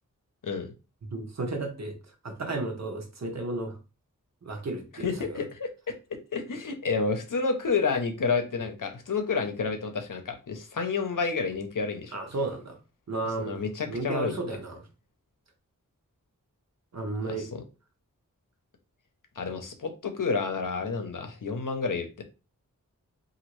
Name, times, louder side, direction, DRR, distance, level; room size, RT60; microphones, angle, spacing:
voice 1, 1.1-1.9 2.2-3.8 4.4-5.4 12.1-12.8 13.1-13.6 13.9-14.8 16.9-17.5, right 2 dB, 50° right, 4 dB, 0.8 m, -33 dB
voice 2, 4.9-5.7 6.3-12.2 13.4-14.3 17.2-17.6 19.4-22.2, left 4 dB, 70° left, 6 dB, 0.7 m, -30 dB
2.9 x 2.6 x 3.0 m, 0.31 s
wide cardioid pair, 60°, 33 cm